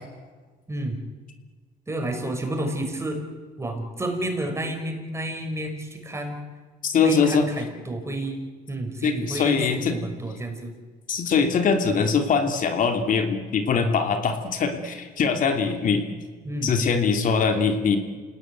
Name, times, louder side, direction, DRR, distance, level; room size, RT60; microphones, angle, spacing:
voice 1, 0.7-1.1 1.9-3.2 3.6-6.4 7.0-8.4 8.7-10.7 16.4-16.7, right 1 dB, 15° right, 4 dB, 5.3 m, -30 dB
voice 2, 6.8-7.5 9.0-10.0 11.1-16.0 16.6-18.0, left 5 dB, 50° left, 5 dB, 2.9 m, -22 dB
28.0 x 19.0 x 9.4 m, 1.5 s
cardioid pair, 110°, 17 cm